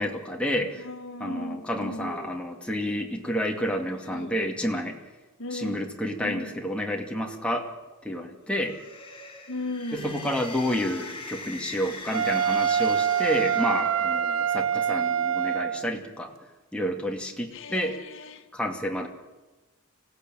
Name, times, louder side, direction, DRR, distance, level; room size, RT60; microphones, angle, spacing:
voice 1, 0.0-0.9 1.2-5.0 5.5-7.7 8.0-8.8 9.9-16.3 16.7-17.9 18.5-19.1, equal, 5° left, 2.4 m, -29 dB
voice 2, 0.7-2.4 4.0-4.4 5.4-5.8 6.2-6.6 9.5-10.2 15.0-15.4 17.5-18.5, left 1 dB, 60° left, 2.0 m, -37 dB
sound 1, 8.5-14.5, left 3 dB, 25° left, 5.0 m, -41 dB
Wind instrument woodwind instrument, 12.1-15.9, right 8 dB, 65° right, 0.7 m, -25 dB
26.0 x 17.0 x 9.1 m
head